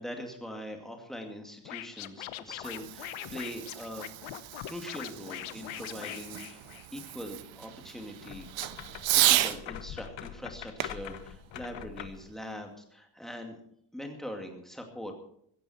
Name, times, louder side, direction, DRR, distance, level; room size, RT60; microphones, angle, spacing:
voice 1, 0.0-4.1 4.6-6.6 6.9-8.5 9.0-13.6 13.9-15.2, equal, ahead, 2 dB, 2.3 m, -42 dB
Scratching (performance technique), 1.6-7.1, left 15 dB, 85° left, 1.0 m, -42 dB
Fireworks, 2.3-9.6 10.8-12.4, right 15 dB, 75° right, 1.0 m, -33 dB
sound 1, 8.2-12.3, left 10 dB, 65° left, 1.4 m, -43 dB
16.5 x 14.5 x 4.4 m, 0.69 s
cardioid pair, 165°, 46 cm